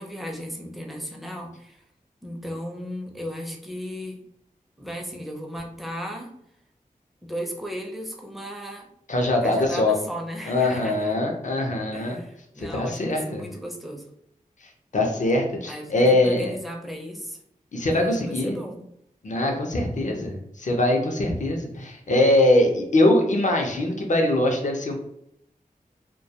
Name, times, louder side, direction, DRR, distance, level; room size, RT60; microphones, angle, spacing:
voice 1, 0.0-1.8 2.2-4.2 4.8-6.3 7.2-8.9 9.4-11.1 11.9-14.1 15.7-17.4 17.9-18.8, equal, ahead, 0 dB, 0.6 m, -35 dB
voice 2, 9.1-10.0 10.5-12.2 12.6-13.4 14.6-16.5 17.7-18.6 19.2-24.9, left 1 dB, 55° left, 2 dB, 0.6 m, -22 dB
2.3 x 2.2 x 2.7 m, 0.76 s
wide cardioid pair, 50°, 15 cm